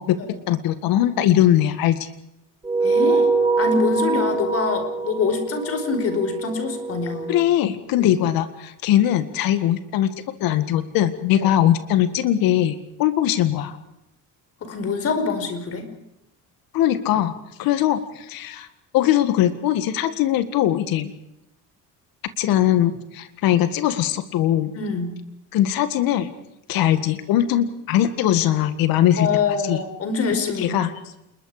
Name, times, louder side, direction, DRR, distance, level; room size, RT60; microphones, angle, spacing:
voice 1, 0.5-2.1 7.3-10.1 10.4-13.8 16.7-17.3 17.6-18.7 18.9-21.1 22.4-24.7 25.5-26.3 26.7-29.3 29.6-29.8 30.6-30.9, left 12 dB, 80° left, 10 dB, 1.9 m, -20 dB
sound 1, 2.6-7.4, right 4 dB, 10° right, 2.8 m, -23 dB
voice 2, 2.8-3.3 3.6-7.4 8.0-8.1 11.4-11.5 14.6-15.9 24.7-25.2 29.1-30.8, left 5 dB, 45° left, 8 dB, 5.1 m, -25 dB
28.5 x 21.5 x 5.0 m, 0.85 s
cardioid pair, 155°, 34 cm